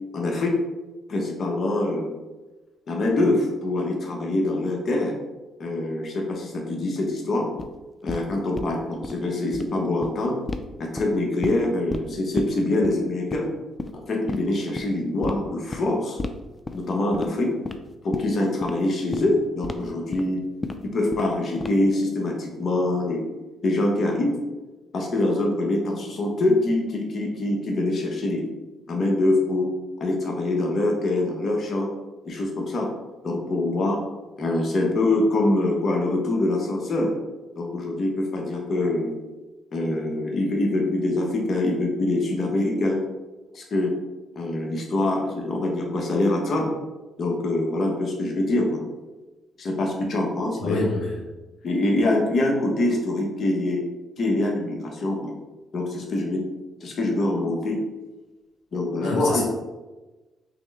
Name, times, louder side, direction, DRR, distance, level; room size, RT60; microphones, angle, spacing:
voice 1, 0.1-0.6 1.1-2.1 2.9-5.1 5.6-7.5 8.0-10.3 10.8-13.5 14.1-16.2 16.7-17.5 18.0-20.4 20.9-23.2 23.6-24.3 24.9-28.5 28.9-29.7 30.0-31.9 32.2-32.9 33.2-34.0 34.4-37.1 37.6-39.2 39.7-43.0 43.5-43.9 44.3-46.7 47.2-48.8 49.6-50.8 51.6-53.8 54.2-55.3 55.7-56.4 56.8-57.8 58.7-59.4, left 2 dB, 50° left, 0 dB, 1.0 m, -24 dB
sound 1, 7.6-7.7 8.1-8.2 8.6-8.7 9.0-9.1 9.4-9.6 10.0-10.1 10.5-10.6 11.0-11.6 11.9-12.0 12.4-12.5 12.8-12.9 13.3-13.5 13.8-13.9 14.3-14.4 14.7-14.9 15.2-15.3 15.7-15.8 16.2-16.3 16.7-16.8 17.1-17.3 17.6-17.8 18.1-18.3 18.6-18.7 19.1-19.2 19.6-19.7 20.1-20.2 20.6-20.7 21.1-21.3 21.6-21.9, left 3 dB, 25° left, 0.3 m, -31 dB
voice 2, 50.6-51.2 59.0-59.4, left 2 dB, 85° left, -2 dB, 0.6 m, -27 dB
5.7 x 2.2 x 3.4 m, 1.2 s
cardioid pair, 90°, 0 cm